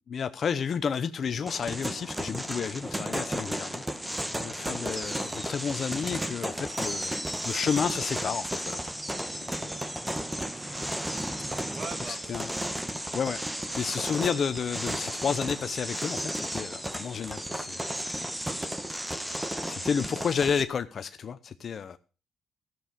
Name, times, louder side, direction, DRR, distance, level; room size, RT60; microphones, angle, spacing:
voice 1, 0.1-7.1 7.4-8.8 9.6-9.7 11.4-11.6 12.1-12.5 13.1-13.4 13.8-18.0 19.6-22.0, left 7 dB, 50° left, 0.8 m, -31 dB
sound 1, 1.5-20.6, right 1 dB, 10° right, 1.5 m, -34 dB
voice 2, 11.7-12.6 13.1-13.3 18.5-19.0, right 4 dB, 55° right, 2.5 m, -45 dB
14.0 x 7.6 x 6.7 m
cardioid pair, 90°, 0 cm